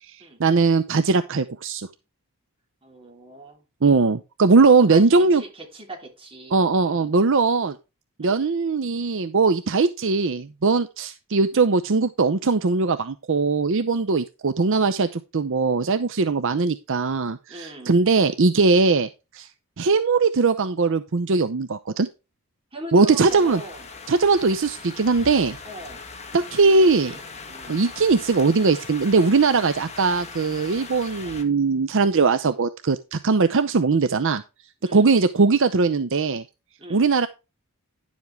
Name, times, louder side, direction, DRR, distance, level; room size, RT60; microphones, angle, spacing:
voice 1, 0.1-1.9 3.8-5.4 6.5-7.8 8.2-19.1 19.3-19.5 19.8-22.1 22.9-23.6 24.1-25.6 26.3-27.1 27.7-34.4 34.9-36.4 36.9-37.3, right 4 dB, 60° right, 10 dB, 0.6 m, -20 dB
voice 2, 2.8-3.7 4.8-7.1 8.2-8.5 17.5-18.0 22.7-23.9 25.6-26.0 26.7-27.2 27.5-27.8 34.8-35.1 36.8-37.1, right 1 dB, 25° right, 1 dB, 3.3 m, -40 dB
sound 1, 23.3-31.4, left 4 dB, 30° left, 1.8 m, -40 dB
10.5 x 7.3 x 3.3 m, 0.27 s
head